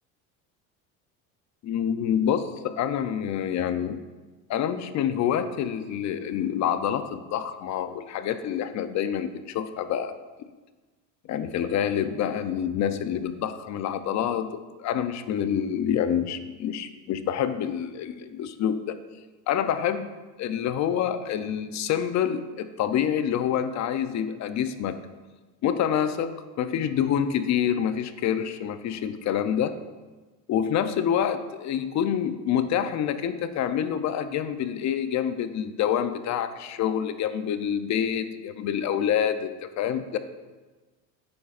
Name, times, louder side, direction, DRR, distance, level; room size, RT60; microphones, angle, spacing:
voice 1, 1.6-4.0 4.5-10.2 11.3-19.0 19.5-20.1 20.4-25.0 25.6-26.3 26.6-29.7 30.5-39.5 39.8-40.2, left 9 dB, 45° left, 11 dB, 0.6 m, -27 dB
10.0 x 8.6 x 2.5 m, 1.3 s
supercardioid pair, 115°, 40 cm